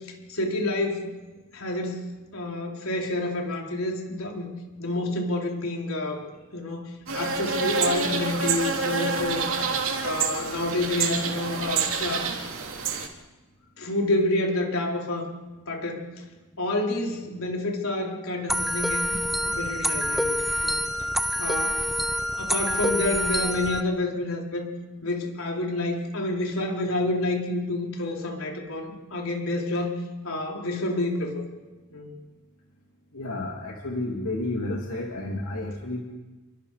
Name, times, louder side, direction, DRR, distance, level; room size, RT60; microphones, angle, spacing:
voice 1, 0.3-1.1 1.5-2.0 2.3-4.5 4.8-6.3 6.5-9.5 10.0-12.3 12.8-12.9 13.8-15.3 15.7-16.1 16.6-19.2 19.4-20.8 21.4-21.8 22.4-24.7 25.0-30.0 30.2-31.4 31.9-32.1, left 2 dB, 70° left, 1 dB, 4.3 m, -28 dB
sound 1, 7.1-13.1, right 5 dB, 65° right, 3.1 m, -28 dB
sound 2, 18.5-23.8, equal, ahead, 0.8 m, -26 dB
voice 2, 33.1-36.0, left 2 dB, 90° left, 0 dB, 2.8 m, -31 dB
29.5 x 24.0 x 5.1 m, 1.2 s
head